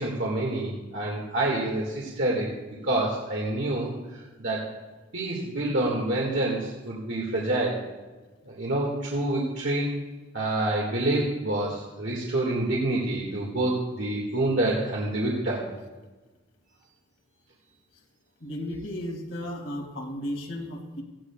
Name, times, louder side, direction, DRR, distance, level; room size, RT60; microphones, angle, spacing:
voice 1, 0.0-2.5 2.8-3.9 4.4-4.7 5.1-7.8 8.5-9.9 10.3-15.7, right 2 dB, 65° right, -3 dB, 2.0 m, -27 dB
voice 2, 18.4-21.0, equal, 65° left, 2 dB, 2.2 m, -34 dB
17.5 x 15.5 x 2.4 m, 1.2 s
head